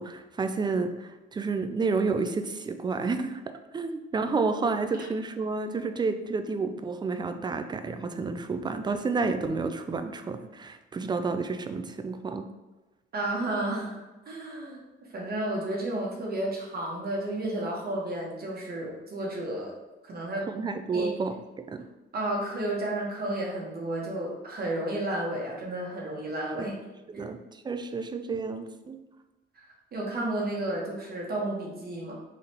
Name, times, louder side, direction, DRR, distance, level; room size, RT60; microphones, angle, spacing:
voice 1, 0.0-12.4 20.5-21.8 26.6-26.7 27.1-29.0, right 4 dB, 20° right, 8 dB, 0.4 m, -30 dB
voice 2, 13.1-14.8 15.1-19.7 20.1-20.5 20.9-21.1 22.1-26.7 27.1-27.2 29.9-32.1, right 1 dB, 50° right, -3 dB, 1.2 m, -32 dB
3.8 x 3.4 x 2.8 m, 1.1 s
cardioid pair, 90°, 20 cm